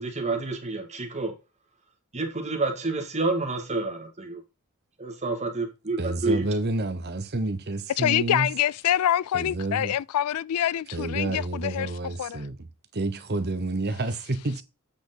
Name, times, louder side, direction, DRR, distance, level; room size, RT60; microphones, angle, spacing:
voice 1, 0.0-1.3 2.1-4.4 5.0-6.5, right 3 dB, 30° right, 2.1 m, -29 dB
voice 2, 6.0-8.5 9.3-9.9 10.9-12.7 12.9-14.6, right 2 dB, 45° right, 1.0 m, -29 dB
voice 3, 8.0-11.9 12.2-12.4, left 11 dB, 80° left, 0.3 m, -25 dB
8.6 x 5.3 x 3.9 m
head